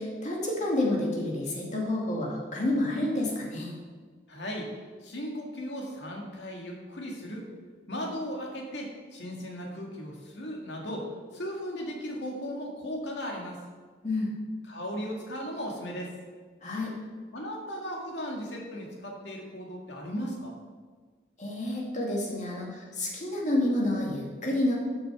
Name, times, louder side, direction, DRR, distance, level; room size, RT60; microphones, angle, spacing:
voice 1, 0.0-3.7 14.0-14.3 16.6-17.0 21.4-24.7, left 1 dB, 40° left, -2 dB, 2.4 m, -29 dB
voice 2, 4.3-4.7 5.0-7.5 7.9-11.1 11.3-13.6 14.7-16.1 17.3-20.5, equal, 70° left, -1 dB, 2.2 m, -36 dB
13.0 x 6.7 x 4.9 m, 1.5 s
head